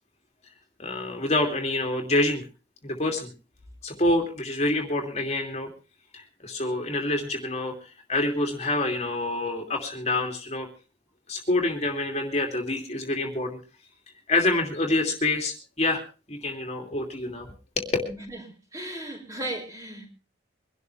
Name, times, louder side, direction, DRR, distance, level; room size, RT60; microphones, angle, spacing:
voice 1, 0.8-2.4 2.8-3.3 3.8-5.7 6.1-10.7 11.3-13.6 14.3-16.0 16.3-17.5 17.8-17.9, left 2 dB, 35° left, 2.8 m, -27 dB
voice 2, 18.1-18.4 18.7-20.1, right 1 dB, 20° right, 4.9 m, -35 dB
24.0 x 12.5 x 3.4 m
head